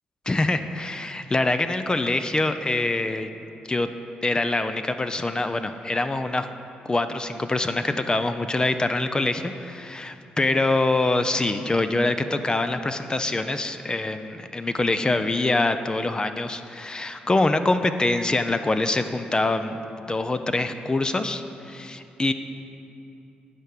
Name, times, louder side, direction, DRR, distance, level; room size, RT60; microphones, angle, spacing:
voice 1, 0.3-3.3 3.7-3.9 4.2-6.5 6.9-22.3, left 2 dB, 25° left, 9 dB, 0.5 m, -24 dB
9.9 x 4.6 x 6.6 m, 2.8 s
cardioid pair, 65°, 3 cm